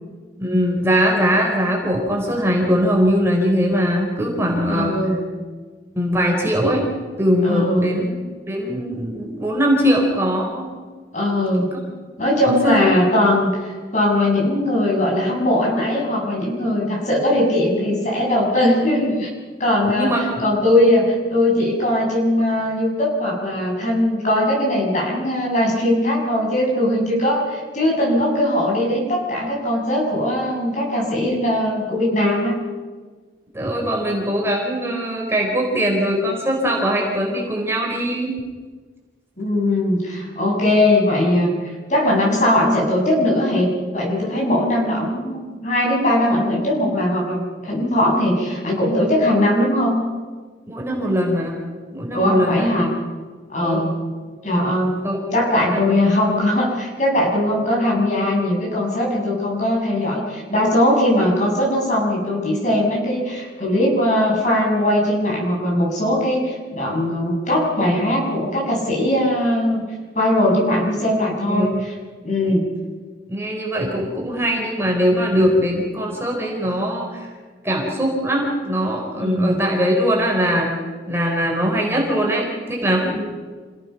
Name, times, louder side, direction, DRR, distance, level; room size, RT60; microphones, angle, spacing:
voice 1, 0.4-5.0 5.9-6.9 7.2-8.2 8.5-10.7 11.7-11.8 12.4-13.0 19.9-20.6 33.5-38.4 50.7-51.6 51.9-52.7 53.6-53.9 55.0-55.2 55.7-56.1 71.5-71.8 72.4-72.5 73.3-77.3 77.6-80.7 81.1-83.3, equal, 15° right, -1 dB, 4.0 m, -21 dB
voice 2, 4.6-5.2 7.4-8.0 11.1-11.7 12.2-19.3 19.6-20.1 20.4-32.5 39.4-50.0 52.1-52.9 53.5-53.9 54.4-54.9 55.3-69.8 70.2-71.9 72.2-72.7 79.2-79.6 83.1-83.2, left 1 dB, 45° left, -2 dB, 7.4 m, -20 dB
27.5 x 17.5 x 5.9 m, 1.5 s
head